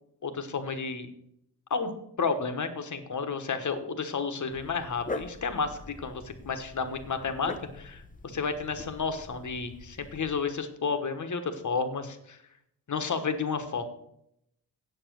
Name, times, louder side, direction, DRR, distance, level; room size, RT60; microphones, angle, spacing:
voice 1, 0.2-1.1 1.7-1.9 2.2-12.4 12.9-13.8, left 5 dB, 45° left, 8 dB, 1.2 m, -31 dB
Dog, 4.5-10.4, left 3 dB, 20° left, 0.7 m, -43 dB
8.6 x 7.1 x 6.3 m, 0.75 s
wide cardioid pair, 120°, 41 cm